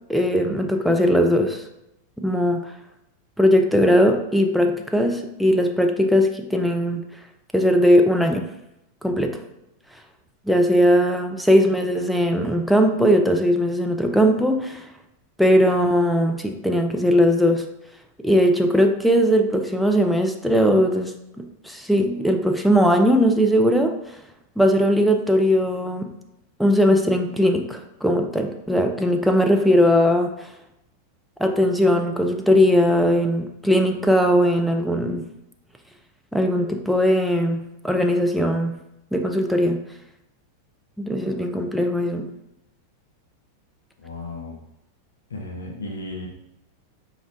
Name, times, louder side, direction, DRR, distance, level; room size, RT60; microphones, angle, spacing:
voice 1, 0.1-1.6 2.2-2.7 3.4-7.0 7.5-8.5 9.0-9.4 10.5-14.8 15.4-17.7 18.2-23.9 24.6-26.1 26.6-30.5 31.4-35.3 36.3-38.8 39.1-39.8 41.0-42.3, equal, ahead, 4 dB, 0.4 m, -19 dB
voice 2, 44.0-44.6 45.3-46.3, left 2 dB, 70° left, 0 dB, 0.6 m, -34 dB
5.1 x 3.0 x 2.5 m, 0.86 s
figure-of-eight pair, 90°, 0 cm